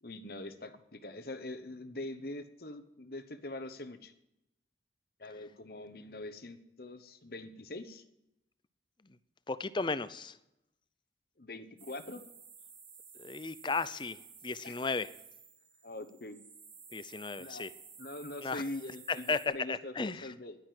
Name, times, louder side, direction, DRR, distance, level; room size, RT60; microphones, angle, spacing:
voice 1, 0.0-4.1 5.2-8.0 11.4-12.2 14.6-14.8 15.8-16.4 17.4-17.7 18.0-20.6, left 2 dB, 55° left, 10 dB, 1.1 m, -43 dB
voice 2, 9.5-10.4 13.2-15.1 16.9-17.7 18.4-18.6 19.3-19.4 19.7-20.3, left 4 dB, 25° left, 15 dB, 0.5 m, -35 dB
sound 1, 11.8-19.5, right 6 dB, 85° right, 3.6 m, -54 dB
11.0 x 10.5 x 7.8 m, 0.84 s
head